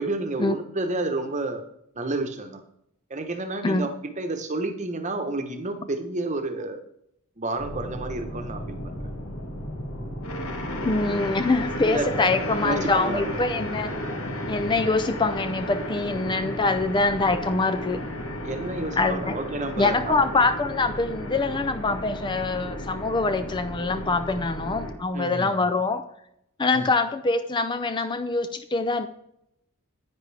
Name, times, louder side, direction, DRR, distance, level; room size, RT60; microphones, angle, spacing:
voice 1, 0.0-1.6 2.0-2.6 3.1-6.8 7.4-8.9 11.8-12.4 12.6-13.5 18.4-20.3 25.1-25.8 26.7-26.9, right 2 dB, 35° right, 6 dB, 1.0 m, -30 dB
sound 1, 7.6-24.9, left 1 dB, 85° left, 1.6 m, -33 dB
voice 2, 10.8-13.9 14.5-18.0 19.0-19.3 19.8-26.1 26.6-29.1, left 3 dB, 20° left, 9 dB, 0.4 m, -24 dB
10.0 x 9.0 x 3.4 m, 0.76 s
head